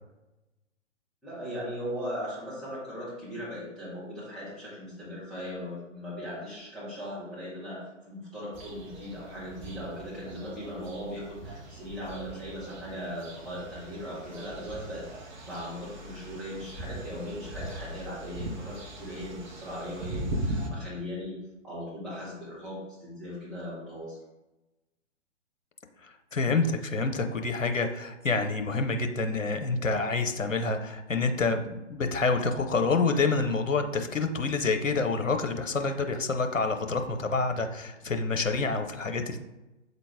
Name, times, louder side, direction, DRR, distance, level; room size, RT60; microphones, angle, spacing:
voice 1, 1.2-21.4 21.6-24.2, equal, ahead, -11 dB, 2.1 m, -38 dB
summer in city, 8.5-20.7, right 1 dB, 35° right, 1.0 m, -40 dB
voice 2, 26.0-39.4, left 4 dB, 85° left, 6 dB, 0.8 m, -27 dB
7.7 x 3.9 x 3.6 m, 1.0 s
figure-of-eight pair, 130°, 38 cm